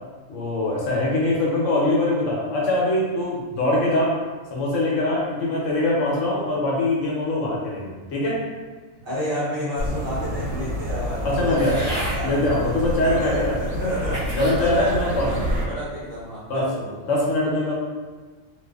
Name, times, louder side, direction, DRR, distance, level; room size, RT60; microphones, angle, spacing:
voice 1, 0.3-4.1 4.5-8.4 11.2-11.9 12.2-13.5 14.1-15.3 16.5-16.6 17.0-17.7, left 2 dB, 70° left, -4 dB, 1.0 m, -23 dB
voice 2, 9.0-12.7 13.0-14.2 14.6-17.0, equal, 50° right, -9 dB, 0.9 m, -30 dB
sound 1, 9.8-15.7, equal, 90° right, 1.0 m, -28 dB
sound 2, 11.6-12.2 13.0-13.1 13.8-14.6 15.2-15.6, right 1 dB, 20° left, 1.0 m, -33 dB
2.5 x 2.4 x 2.2 m, 1.4 s
omnidirectional pair, 1.4 m